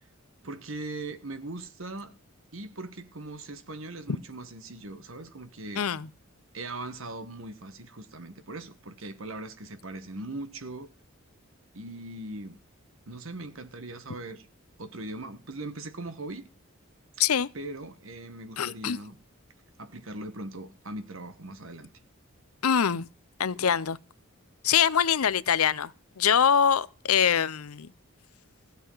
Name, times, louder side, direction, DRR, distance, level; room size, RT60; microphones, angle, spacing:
voice 1, 0.4-2.1 2.5-5.8 6.5-10.9 11.7-12.6 13.1-14.5 14.8-16.4 17.5-19.2 19.8-21.9, right 2 dB, 70° right, 1.5 m, -40 dB
voice 2, 5.8-6.1 17.2-17.5 18.6-19.0 22.6-23.1 23.4-24.0 24.6-25.9 26.2-27.9, left 8 dB, 90° left, 0.6 m, -24 dB
15.5 x 8.1 x 5.6 m
head